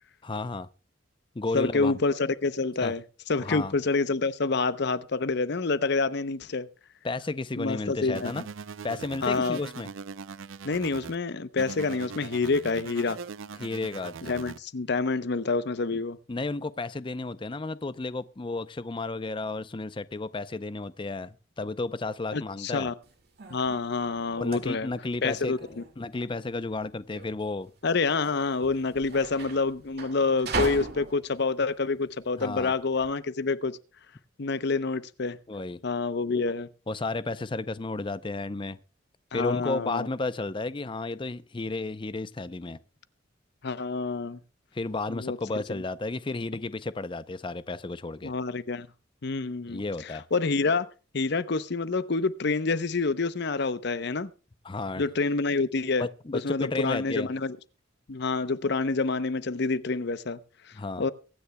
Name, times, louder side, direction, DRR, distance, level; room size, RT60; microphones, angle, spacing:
voice 1, 0.2-0.7 1.4-2.0 2.8-2.9 3.4-3.7 7.0-8.5 8.8-9.9 13.6-14.1 16.3-22.9 24.4-27.7 32.4-32.7 35.5-35.8 36.9-38.8 39.3-42.8 44.7-48.3 49.7-50.2 54.6-55.0 56.0-57.3 60.7-61.0, left 3 dB, 25° left, 0.5 m, -33 dB
voice 2, 1.5-3.0 3.3-6.7 7.6-8.3 9.2-9.6 10.6-13.2 14.2-16.2 22.3-22.9 23.5-24.9 25.2-25.8 27.8-33.8 34.4-35.4 35.8-36.7 39.3-40.1 43.6-44.4 45.1-45.4 48.2-48.9 49.2-50.9 51.1-54.3 55.0-56.1 56.3-57.6 58.1-60.4 61.0-61.1, left 3 dB, 60° left, 0.7 m, -27 dB
sound 1, 8.1-11.2 11.6-14.6, right 5 dB, 85° right, 0.5 m, -41 dB
sound 2, 23.0-33.1, right 3 dB, 55° right, 2.1 m, -39 dB
23.5 x 9.8 x 2.2 m
head